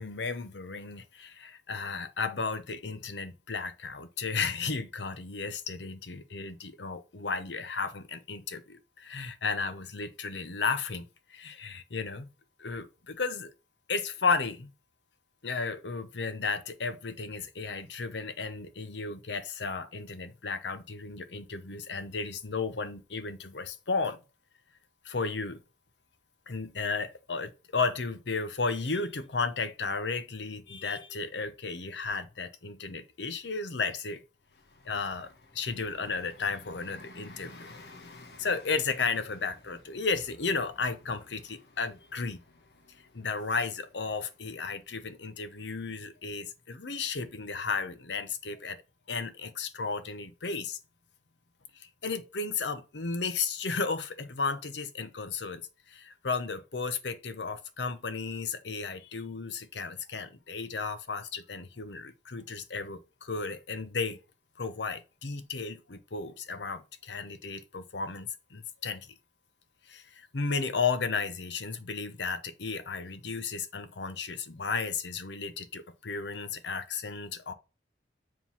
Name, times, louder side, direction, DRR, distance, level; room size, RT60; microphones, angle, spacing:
voice 1, 0.0-12.3 12.6-13.5 13.9-14.7 15.4-24.2 25.0-25.6 26.5-34.2 34.8-37.7 38.4-42.4 43.1-48.8 49.1-50.8 51.7-55.6 55.9-64.2 64.6-69.1 69.9-77.5, left 4 dB, 90° left, 0.9 m, -34 dB
Bus, 34.4-46.7, left 2 dB, 70° left, 1.4 m, -55 dB
7.3 x 3.9 x 5.7 m
head